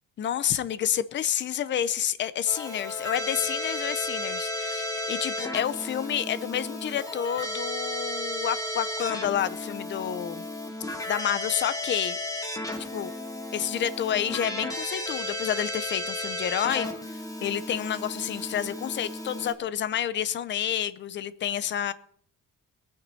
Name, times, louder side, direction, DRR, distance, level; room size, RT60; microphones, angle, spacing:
voice 1, 0.2-10.4 11.1-12.2 12.9-13.1 13.5-16.9 17.4-21.9, left 10 dB, 35° left, 15 dB, 0.6 m, -29 dB
Keyboard (musical), 2.5-19.5, left 1 dB, 10° left, 1.6 m, -34 dB
21.5 x 9.6 x 4.1 m, 0.63 s
cardioid pair, 175°, 33 cm